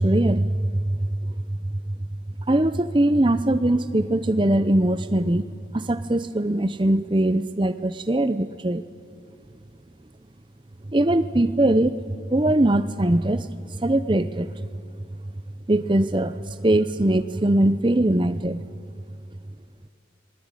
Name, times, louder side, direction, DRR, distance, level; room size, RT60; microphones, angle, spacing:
voice 1, 0.0-1.6 1.9-2.0 2.5-8.8 10.9-12.0 12.3-13.5 13.8-14.5 15.7-18.6, right 1 dB, 25° right, 12 dB, 0.7 m, -21 dB
27.5 x 22.5 x 9.1 m, 2.5 s
head